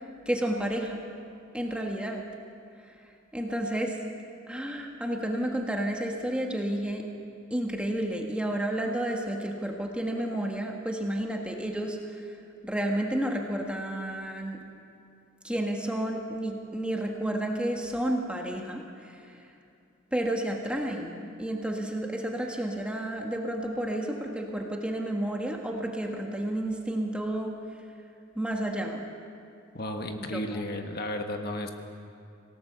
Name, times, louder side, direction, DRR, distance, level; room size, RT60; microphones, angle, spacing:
voice 1, 0.2-1.0 1.5-2.2 3.3-4.0 4.5-7.1 7.5-12.3 12.6-14.6 15.4-19.4 20.1-27.5 28.3-29.0 30.3-30.6, right 1 dB, 5° right, 1 dB, 1.5 m, -31 dB
voice 2, 29.7-31.7, left 1 dB, 45° left, 4 dB, 1.5 m, -33 dB
26.0 x 17.5 x 6.8 m, 2.5 s
head